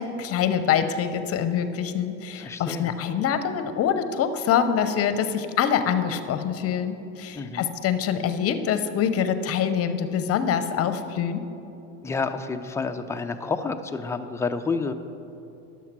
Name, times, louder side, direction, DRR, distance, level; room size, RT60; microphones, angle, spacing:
voice 1, 0.0-11.4, left 8 dB, 40° left, 10 dB, 0.8 m, -25 dB
voice 2, 2.4-2.9 7.4-7.7 12.0-14.9, left 4 dB, 10° left, 6 dB, 0.4 m, -29 dB
10.5 x 7.3 x 6.0 m, 2.8 s
supercardioid pair, 115°, 36 cm